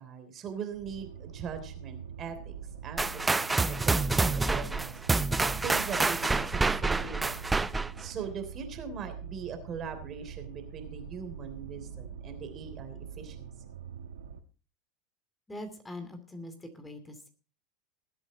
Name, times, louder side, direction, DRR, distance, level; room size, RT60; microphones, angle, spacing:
voice 1, 0.0-2.5 2.8-3.1 3.3-5.2 5.6-7.5 8.0-13.5, right 6 dB, 40° right, 7 dB, 3.3 m, -41 dB
sound 1, 0.7-14.4, right 7 dB, 80° right, 1.3 m, -44 dB
sound 2, 3.0-8.1, right 3 dB, 15° right, 0.6 m, -27 dB
voice 2, 15.5-17.3, left 1 dB, 10° left, 8 dB, 2.7 m, -42 dB
20.0 x 8.1 x 4.2 m, 0.37 s
hypercardioid pair, 90°, 0 cm